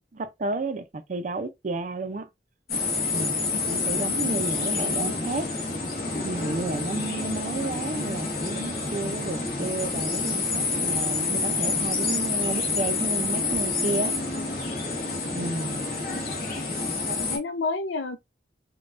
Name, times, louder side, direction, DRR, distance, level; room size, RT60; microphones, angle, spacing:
voice 1, 0.0-2.3 3.1-5.5 6.2-14.2 15.3-15.8, right 2 dB, 45° right, 0.5 m, -31 dB
sound 1, 2.7-17.4, left 3 dB, 50° left, 1.2 m, -28 dB
voice 2, 15.0-15.4 16.0-16.1 17.1-18.2, left 3 dB, 85° left, 0.6 m, -31 dB
5.2 x 2.3 x 2.5 m
head